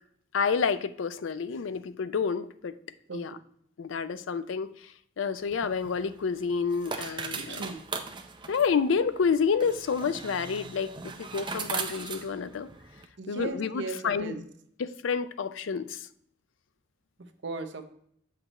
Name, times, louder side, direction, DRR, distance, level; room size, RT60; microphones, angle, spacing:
voice 1, 0.3-2.7 3.1-3.4 3.8-4.7 5.2-7.7 8.5-12.7 13.3-14.3 14.8-16.1, left 5 dB, 80° left, 14 dB, 0.4 m, -29 dB
sound 1, 5.4-13.1, right 5 dB, 25° right, 0.5 m, -39 dB
voice 2, 7.4-7.8 13.2-14.4 17.2-17.8, right 3 dB, 65° right, 7 dB, 0.7 m, -37 dB
7.9 x 5.8 x 3.0 m, 0.70 s
head